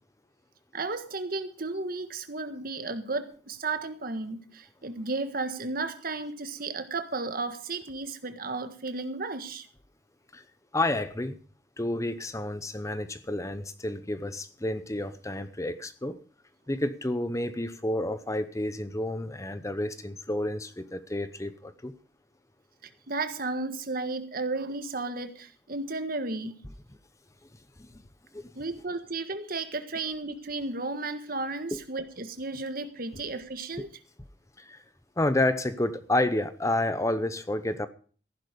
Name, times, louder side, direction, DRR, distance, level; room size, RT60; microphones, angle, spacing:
voice 1, 0.7-9.7 23.1-26.5 28.5-33.9, right 3 dB, 50° right, 9 dB, 1.6 m, -33 dB
voice 2, 10.7-11.4 11.8-16.2 16.7-21.9 27.8-27.9 28.3-28.5 31.7-31.8 33.8-33.9 34.6-34.8 35.2-37.9, left 1 dB, 15° left, 12 dB, 0.8 m, -30 dB
15.0 x 11.0 x 5.1 m, 0.41 s
head